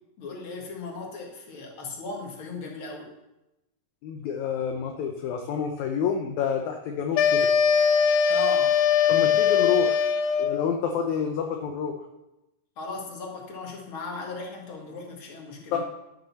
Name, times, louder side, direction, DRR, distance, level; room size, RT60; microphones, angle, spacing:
voice 1, 0.2-3.1 8.3-8.7 12.8-15.8, left 3 dB, 45° left, 0 dB, 2.4 m, -37 dB
voice 2, 4.0-7.5 9.1-10.0 10.4-12.0 15.7-15.8, left 7 dB, 70° left, 3 dB, 2.0 m, -28 dB
sound 1, 7.2-10.7, left 7 dB, 90° left, 2.4 m, -21 dB
13.0 x 6.7 x 5.8 m, 0.95 s
omnidirectional pair, 3.9 m